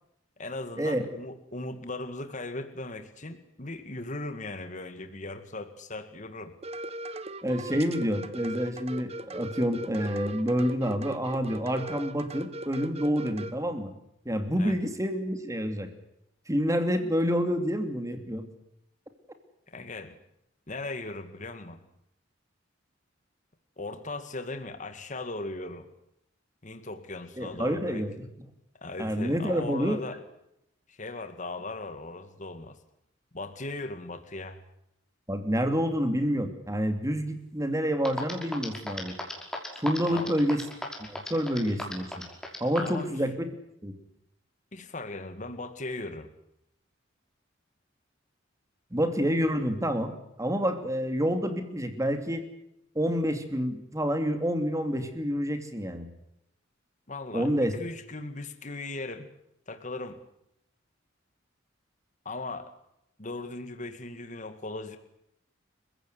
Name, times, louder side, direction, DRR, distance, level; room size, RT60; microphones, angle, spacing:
voice 1, 0.4-6.5 14.6-14.8 19.7-20.2 20.7-21.8 23.8-25.9 26.6-28.0 28.8-30.2 30.9-32.8 33.3-34.6 40.1-40.3 42.8-43.2 44.7-46.3 57.1-59.3 59.7-60.2 62.3-62.7 63.2-65.0, left 2 dB, 40° left, 8 dB, 2.0 m, -38 dB
sound 1, 6.6-13.5, right 2 dB, 30° right, 1.5 m, -39 dB
voice 2, 7.4-13.9 14.2-15.9 16.5-18.5 27.4-28.1 29.0-30.0 35.3-39.1 39.8-40.6 41.0-42.2 42.6-43.3 43.8-44.0 48.9-50.1 50.4-52.5 52.9-56.1 57.3-57.7, equal, 15° right, 7 dB, 2.8 m, -28 dB
sound 2, 37.7-37.8 38.0-43.0, left 1 dB, 5° left, 5.3 m, -35 dB
29.0 x 16.0 x 9.7 m, 0.79 s
head